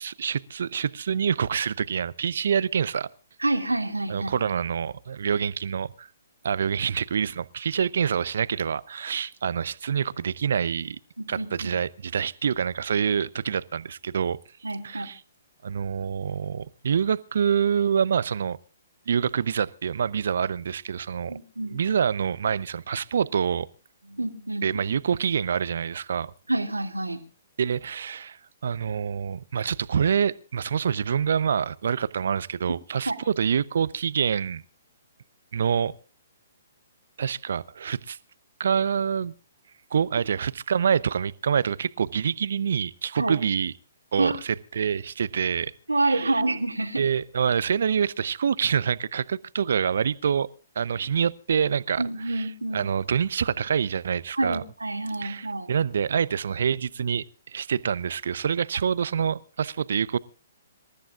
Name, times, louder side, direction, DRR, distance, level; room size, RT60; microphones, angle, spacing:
voice 1, 0.0-3.1 4.1-6.1 6.4-11.0 11.3-14.4 14.8-15.2 15.6-18.6 19.1-21.3 21.7-23.7 24.6-26.3 27.6-34.6 35.5-35.9 37.2-38.2 38.6-39.3 39.9-43.7 44.1-45.7 46.0-46.4 47.0-50.5 50.8-52.5 52.7-54.6 55.2-60.2, right 7 dB, 60° right, 0.7 m, -26 dB
voice 2, 3.4-4.3 11.2-11.7 14.6-15.1 21.3-22.0 24.0-24.7 26.5-27.2 33.1-33.2 43.2-43.3 44.2-44.4 45.9-47.1 52.0-52.8 54.4-55.7, right 2 dB, 85° right, 2.3 m, -28 dB
26.5 x 14.0 x 2.5 m
figure-of-eight pair, 125°, 0 cm